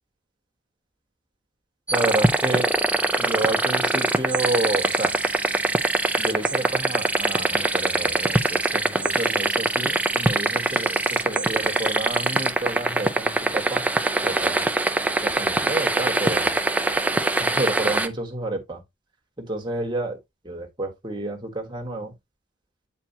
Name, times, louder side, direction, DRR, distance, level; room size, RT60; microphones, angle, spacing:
sound 1, 1.9-18.1, right 2 dB, 10° right, 0.4 m, -23 dB
voice 1, 1.9-2.7 3.2-5.2 6.2-13.9 14.2-14.7 15.2-16.6 17.4-18.8 19.4-20.2 20.4-22.1, right 2 dB, 25° right, 1.5 m, -30 dB
8.5 x 4.5 x 2.8 m
head